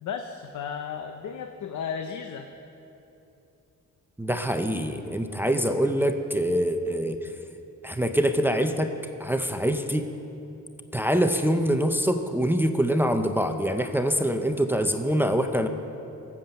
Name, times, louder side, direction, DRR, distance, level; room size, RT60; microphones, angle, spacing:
voice 1, 0.0-2.5, left 7 dB, 70° left, 6 dB, 0.7 m, -34 dB
voice 2, 4.2-7.3 7.8-8.9 9.2-10.1 10.9-15.7, equal, 5° right, 6 dB, 0.5 m, -24 dB
17.0 x 7.4 x 7.7 m, 2.9 s
wide cardioid pair, 170°, 31 cm